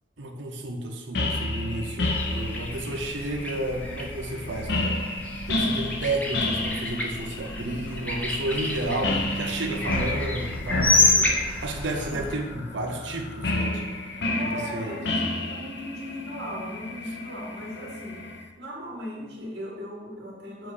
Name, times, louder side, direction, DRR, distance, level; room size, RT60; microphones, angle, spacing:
voice 1, 0.2-5.0 5.5-14.0 14.4-15.0 17.1-17.2, right 1 dB, 90° right, 3 dB, 0.8 m, -32 dB
sound 1, 1.1-18.4, left 2 dB, 65° left, 0.7 m, -31 dB
sound 2, 2.0-12.4, left 2 dB, 10° left, 0.7 m, -29 dB
voice 2, 14.4-18.3 18.6-20.7, equal, 75° right, -4 dB, 1.9 m, -38 dB
7.6 x 2.6 x 4.9 m, 1.4 s
head